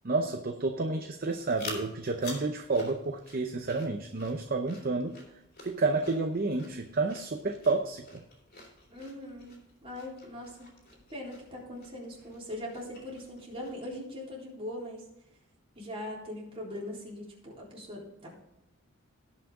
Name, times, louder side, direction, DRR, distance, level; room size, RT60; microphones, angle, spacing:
voice 1, 0.0-5.2 5.6-8.2, right 3 dB, 45° right, 5 dB, 0.7 m, -30 dB
sound 1, 1.2-14.0, left 2 dB, 45° left, 3.3 m, -49 dB
voice 2, 8.9-9.6 9.8-10.7 11.1-15.0 15.8-18.3, left 1 dB, 25° right, -4 dB, 3.9 m, -41 dB
18.0 x 6.0 x 3.7 m, 0.88 s
head